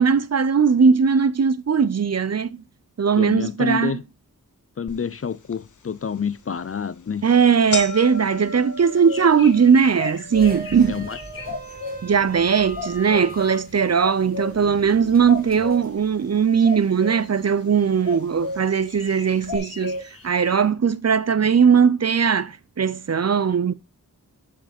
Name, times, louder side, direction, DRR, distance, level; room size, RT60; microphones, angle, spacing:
voice 1, 0.0-2.6 3.0-3.9 7.2-11.0 12.0-20.0 20.2-23.7, right 6 dB, 50° right, 0.5 m, -19 dB
voice 2, 3.2-4.0 4.8-7.2 10.9-11.2 11.5-11.6, left 6 dB, 45° left, 0.5 m, -28 dB
sound 1, 4.9-5.0 5.5-5.6 6.4-6.6 7.0-7.1 7.3-15.5 15.8-16.5 17.3-17.4 18.4-18.5 18.8-18.9 19.4-19.6, left 3 dB, 60° left, 0.8 m, -37 dB
sound 2, 8.8-12.0 12.7-13.4 14.0-14.5 15.3-15.8 16.6-17.3 18.0-18.6 18.9-20.7, left 4 dB, 80° left, 1.2 m, -32 dB
sound 3, 10.3-16.8, right 2 dB, 25° right, 1.5 m, -40 dB
7.3 x 4.7 x 4.3 m
wide cardioid pair, 45°, 34 cm